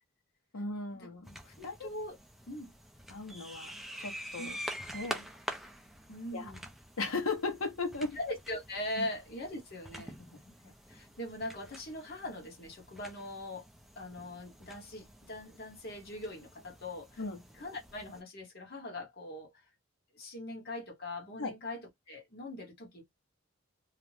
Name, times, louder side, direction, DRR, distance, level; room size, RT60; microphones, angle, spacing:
voice 1, 0.5-1.9 3.1-4.6 4.9-5.3 6.3-6.5 7.0-8.1 9.0-9.1 10.2-10.4 17.2-17.4 21.4-21.5, left 3 dB, 75° left, 0.8 m, -37 dB
sound 1, 1.2-18.2, equal, ahead, 0.3 m, -47 dB
voice 2, 1.6-2.1 2.5-2.7 4.4-4.5 6.1-6.6 8.1-10.1 10.4-13.6 14.0-17.2 17.6-19.7 20.1-23.0, left 1 dB, 45° left, 0.9 m, -41 dB
2.4 x 2.0 x 3.1 m
head